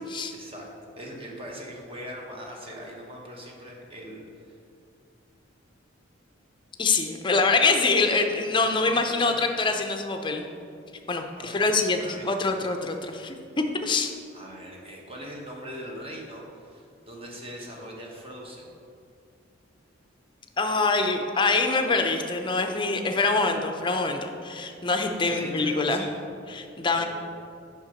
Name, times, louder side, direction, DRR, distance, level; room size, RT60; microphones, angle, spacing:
voice 1, 0.3-4.6 8.6-9.3 11.4-12.4 14.3-18.7 25.2-26.2 26.9-27.1, equal, 30° right, -1 dB, 1.2 m, -41 dB
voice 2, 6.8-10.4 11.1-14.1 20.6-26.0 26.5-27.0, left 3 dB, 25° left, 5 dB, 0.6 m, -25 dB
6.9 x 5.9 x 5.1 m, 2.4 s
head